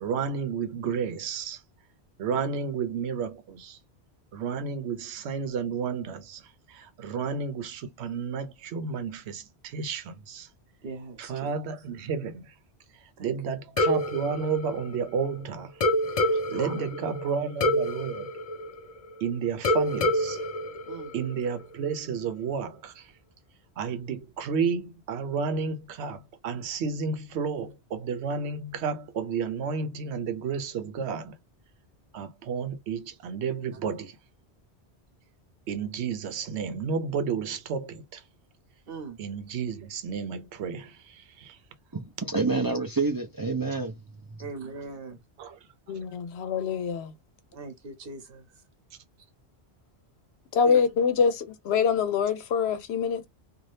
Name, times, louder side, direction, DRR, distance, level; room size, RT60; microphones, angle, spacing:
voice 1, 0.0-1.6 2.2-3.8 4.3-10.5 11.2-12.5 12.9-18.3 19.2-20.4 21.1-23.1 23.8-31.4 32.1-34.2 35.7-38.2 39.2-41.6 45.4-45.5, right 6 dB, 85° right, 0.9 m, -32 dB
voice 2, 10.8-11.5 13.2-13.3 16.5-16.9 20.9-21.1 38.9-39.2 44.4-45.1 47.5-48.4 50.6-50.8, right 3 dB, 60° right, 1.0 m, -40 dB
sound 1, 13.8-15.4 15.8-19.2 19.6-21.6, left 1 dB, 55° left, 0.4 m, -27 dB
voice 3, 41.9-44.0, right 3 dB, 35° right, 0.3 m, -28 dB
voice 4, 45.9-47.1 50.5-53.3, left 6 dB, 75° left, 0.8 m, -25 dB
2.7 x 2.4 x 3.2 m
omnidirectional pair, 1.1 m